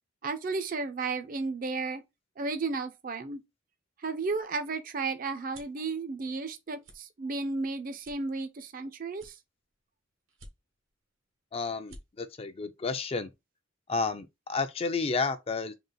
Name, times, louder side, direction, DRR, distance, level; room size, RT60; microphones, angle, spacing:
voice 1, 0.2-2.0 2.4-3.4 4.0-9.3, right 3 dB, 45° right, 0.5 m, -33 dB
sound 1, 4.2-5.8 6.3-6.5 6.8-7.0 7.5-7.6 8.0-8.8 9.1-9.8 10.3-10.9 11.4-11.5 11.7-12.0, right 1 dB, 80° right, 1.2 m, -52 dB
voice 2, 11.5-13.3 13.9-15.7, left 4 dB, 30° left, 0.4 m, -31 dB
3.9 x 2.4 x 3.8 m
head